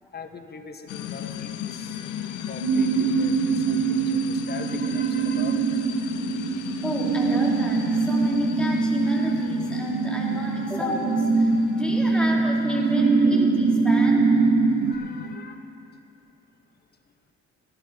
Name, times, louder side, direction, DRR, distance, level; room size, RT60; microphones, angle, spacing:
voice 1, 0.1-2.2 2.5-5.8 12.1-12.3 12.8-12.9 14.9-15.7, left 5 dB, 35° left, 7 dB, 0.9 m, -42 dB
sound 1, 0.9-15.4, left 10 dB, 85° left, 0.6 m, -36 dB
sound 2, 2.6-15.0, right 4 dB, 60° right, 0.9 m, -23 dB
voice 2, 6.8-14.3, left 1 dB, 5° left, -4 dB, 2.4 m, -31 dB
16.0 x 11.0 x 3.9 m, 2.9 s
cardioid pair, 90°, 30 cm